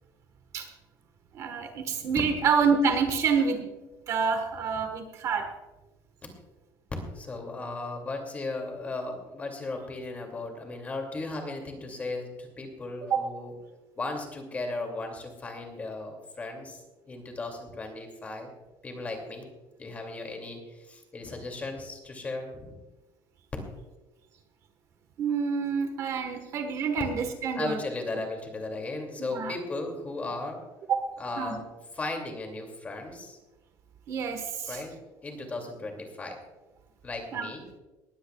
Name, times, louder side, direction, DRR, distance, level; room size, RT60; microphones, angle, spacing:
voice 1, 1.3-3.7 4.1-5.5 13.1-13.2 25.2-27.8 29.2-29.5 30.9-31.5 34.1-34.8 37.3-37.5, right 5 dB, 40° right, 7 dB, 1.3 m, -27 dB
voice 2, 7.1-13.5 14.0-18.5 18.8-19.5 19.8-22.8 27.5-30.6 31.2-31.6 31.9-33.4 34.7-35.0 35.2-36.4 37.0-37.7, left 2 dB, 20° left, 3 dB, 2.5 m, -36 dB
20.0 x 15.5 x 2.4 m, 1.1 s
cardioid pair, 170°, 8 cm